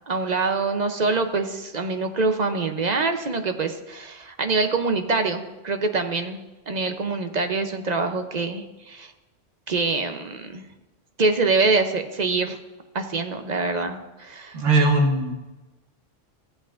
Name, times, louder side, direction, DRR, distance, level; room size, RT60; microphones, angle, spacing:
voice 1, 0.1-9.1 9.7-10.6 11.2-12.6 12.9-14.6, right 3 dB, 45° right, 6 dB, 0.6 m, -25 dB
voice 2, 14.5-15.3, right 2 dB, 80° right, 0 dB, 1.6 m, -19 dB
14.5 x 8.0 x 2.5 m, 1.1 s
omnidirectional pair, 1.3 m